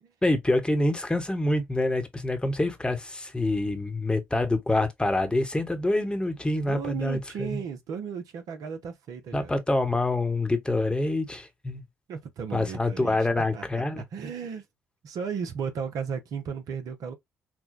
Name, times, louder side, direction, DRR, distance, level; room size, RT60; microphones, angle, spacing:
voice 1, 0.2-7.6 9.3-11.8 12.5-14.0, left 2 dB, 15° left, 1.0 m, -26 dB
voice 2, 6.5-9.5 12.1-14.7 15.0-17.1, right 6 dB, 55° right, 0.8 m, -35 dB
5.8 x 2.2 x 2.4 m
figure-of-eight pair, 45°, 7 cm